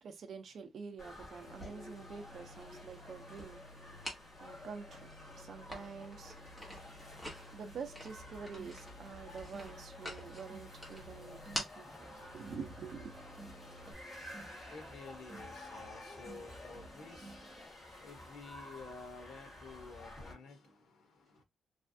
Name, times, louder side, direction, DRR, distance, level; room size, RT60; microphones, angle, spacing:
voice 1, 0.0-6.4 7.5-13.2, right 5 dB, 50° right, 0.6 m, -47 dB
sound 1, 1.0-20.3, left 1 dB, 40° left, 1.7 m, -52 dB
sound 2, 1.4-13.9, equal, 10° left, 1.1 m, -49 dB
sound 3, 5.2-5.3 5.7-5.9 6.2-6.3 6.7-17.7, right 2 dB, 10° right, 1.0 m, -56 dB
voice 2, 14.4-21.4, left 4 dB, 80° left, 1.0 m, -52 dB
3.3 x 2.3 x 2.6 m
wide cardioid pair, 175°, 0 cm